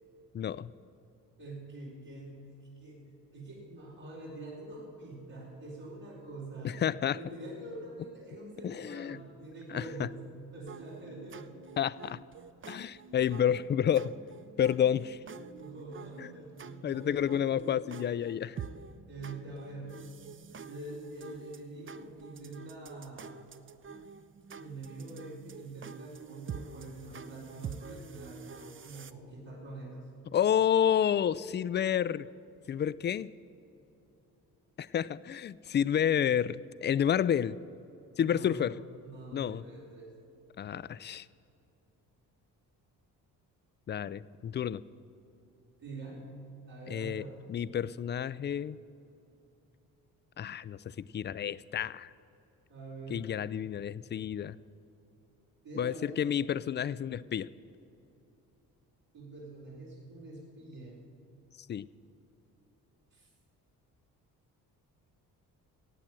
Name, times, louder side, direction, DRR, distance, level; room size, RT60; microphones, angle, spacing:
voice 1, 0.3-0.7 6.6-7.2 8.6-9.2 9.7-10.1 11.8-12.2 12.7-14.1 14.6-15.2 16.2-16.3 16.8-18.6 30.3-32.3 32.7-33.3 34.8-37.6 38.2-38.8 39.3-39.6 40.6-41.3 43.9-44.8 46.9-48.8 50.4-52.1 53.1-54.6 55.8-57.5 61.7-61.9, left 9 dB, 25° left, 18 dB, 0.3 m, -30 dB
voice 2, 1.4-3.0 3.3-6.8 7.1-10.2 10.5-11.5 15.5-17.4 19.1-19.9 20.3-20.4 20.7-23.4 24.5-30.0 38.2-38.6 39.0-40.1 45.8-46.2 46.7-47.4 52.7-53.3 55.6-56.2 59.1-61.1 63.1-63.3, right 2 dB, 65° right, -9 dB, 4.1 m, -45 dB
sound 1, 10.7-29.1, right 6 dB, 30° right, 0.6 m, -47 dB
15.0 x 8.7 x 7.7 m, 2.8 s
hypercardioid pair, 45°, 44 cm